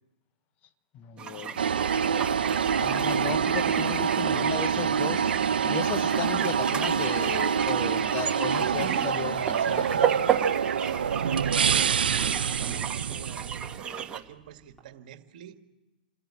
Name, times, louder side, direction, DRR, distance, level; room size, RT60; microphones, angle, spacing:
voice 1, 0.9-1.6 2.8-5.3 5.6-10.1, left 9 dB, 30° left, 11 dB, 1.2 m, -35 dB
sound 1, 1.2-14.2, right 8 dB, 20° right, 1.5 m, -34 dB
sound 2, 1.6-13.8, right 7 dB, 80° right, 0.9 m, -26 dB
sound 3, 9.1-14.8, right 3 dB, 5° left, 5.5 m, -55 dB
voice 2, 11.3-13.5 13.8-15.6, right 11 dB, 55° right, 7 dB, 1.9 m, -48 dB
28.0 x 13.5 x 8.5 m, 1.1 s
hypercardioid pair, 130°, 5 cm